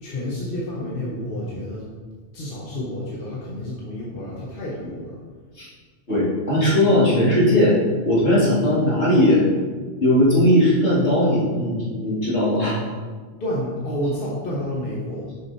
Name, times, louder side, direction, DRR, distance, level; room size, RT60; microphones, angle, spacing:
voice 1, 0.0-1.9 2.3-5.1 13.4-15.3, left 1 dB, 50° left, -6 dB, 1.3 m, -29 dB
voice 2, 6.1-7.8 8.1-9.4 10.0-12.8, left 1 dB, 70° left, -8 dB, 2.7 m, -18 dB
6.6 x 5.8 x 4.1 m, 1.5 s
omnidirectional pair, 1.2 m